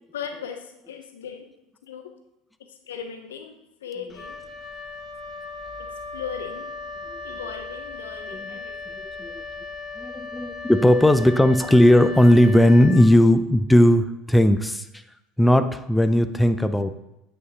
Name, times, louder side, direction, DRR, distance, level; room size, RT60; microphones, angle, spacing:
voice 1, 0.1-1.5 1.8-2.1 2.6-4.4 5.8-6.7 7.2-9.0, left 7 dB, 80° left, 6 dB, 0.7 m, -38 dB
Wind instrument woodwind instrument, 4.1-13.6, left 3 dB, 25° left, 1.0 m, -37 dB
voice 2, 10.0-14.9 15.4-16.9, left 1 dB, 5° left, 10 dB, 0.4 m, -17 dB
9.3 x 5.5 x 2.9 m, 0.87 s
hypercardioid pair, 75°, 0 cm